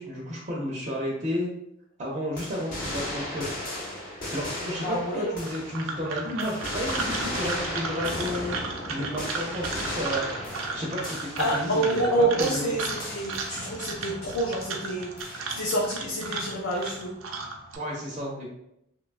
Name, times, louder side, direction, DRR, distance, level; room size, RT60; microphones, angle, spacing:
voice 1, 0.0-1.5 2.0-3.5 4.3-8.6 8.9-10.3 10.7-12.1 12.4-12.7 17.8-18.5, left 1 dB, 35° right, -4 dB, 0.5 m, -32 dB
sound 1, 2.4-6.1 6.4-12.1 12.4-14.1 15.2-15.9, left 1 dB, 45° left, 0.8 m, -36 dB
voice 2, 4.8-5.4 11.4-17.2, right 1 dB, 80° left, -3 dB, 0.5 m, -28 dB
sound 2, 5.4-17.8, right 4 dB, 85° right, 0.4 m, -35 dB
2.8 x 2.2 x 2.4 m, 0.78 s
head